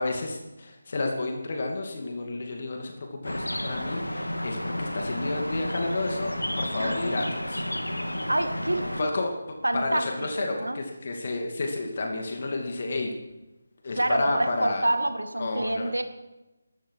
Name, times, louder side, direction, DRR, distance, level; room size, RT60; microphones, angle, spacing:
voice 1, 0.0-7.7 9.0-9.3 9.7-13.1 13.8-14.9 15.4-15.9, left 2 dB, 40° left, 2 dB, 2.5 m, -31 dB
sound 1, 3.2-9.0, left 1 dB, 80° left, 2.6 m, -31 dB
voice 2, 8.3-9.1 9.6-10.0 10.4-10.8 14.0-16.0, right 1 dB, 75° right, 8 dB, 2.1 m, -27 dB
22.0 x 13.5 x 4.8 m, 1.0 s
figure-of-eight pair, 155°, 0 cm